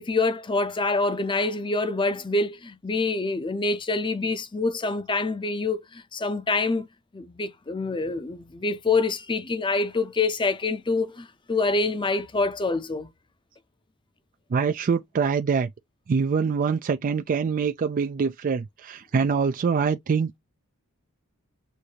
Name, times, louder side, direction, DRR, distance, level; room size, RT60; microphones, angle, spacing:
voice 1, 0.0-6.9 7.1-13.1, left 3 dB, 20° left, 0.6 m, -26 dB
voice 2, 14.5-15.7 16.1-20.4, right 5 dB, 40° right, 0.3 m, -24 dB
6.3 x 2.6 x 2.8 m
head